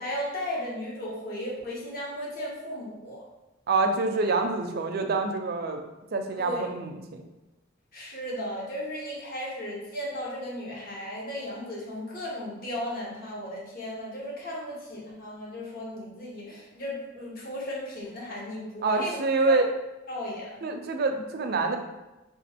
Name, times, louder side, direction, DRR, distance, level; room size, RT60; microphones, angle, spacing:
voice 1, 0.0-3.2 6.4-6.7 7.9-19.2 19.5-19.6 20.1-20.6 21.1-21.2, left 1 dB, 45° left, -4 dB, 0.9 m, -35 dB
voice 2, 3.7-5.8 6.1-7.2 18.8-19.7 20.6-21.8, right 3 dB, 50° right, 5 dB, 0.4 m, -26 dB
3.0 x 2.3 x 4.2 m, 1.0 s
head